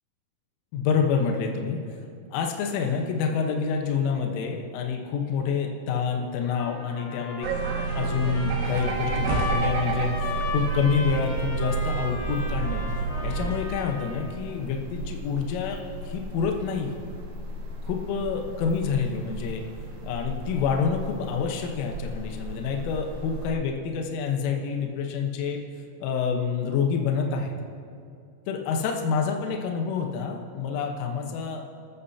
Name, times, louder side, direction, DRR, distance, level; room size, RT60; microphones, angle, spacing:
voice 1, 0.7-1.8 2.3-12.9 13.2-15.8 16.0-17.0 17.8-19.6 20.0-25.6 26.0-27.5 28.5-31.6, left 6 dB, 75° left, 2 dB, 3.7 m, -27 dB
Trumpet, 6.4-14.3, left 4 dB, 55° left, 5.8 m, -36 dB
sound 1, 7.4-13.6, right 5 dB, 80° right, 2.4 m, -29 dB
sound 2, 8.6-23.5, right 1 dB, 55° right, 2.5 m, -38 dB
30.0 x 13.5 x 2.9 m, 2.4 s
omnidirectional pair, 5.9 m